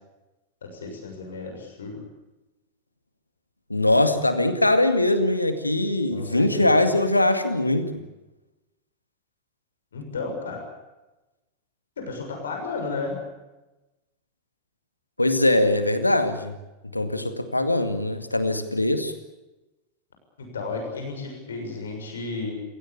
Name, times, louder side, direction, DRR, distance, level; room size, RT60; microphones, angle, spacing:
voice 1, 0.6-2.0 6.1-6.9 9.9-10.7 12.0-13.2 20.5-22.5, left 3 dB, 65° left, 3 dB, 6.7 m, -33 dB
voice 2, 3.7-8.0 15.2-16.6 16.9-19.1, left 1 dB, 85° left, 9 dB, 2.0 m, -22 dB
28.5 x 17.5 x 8.6 m, 1.0 s
figure-of-eight pair, 90°, 0 cm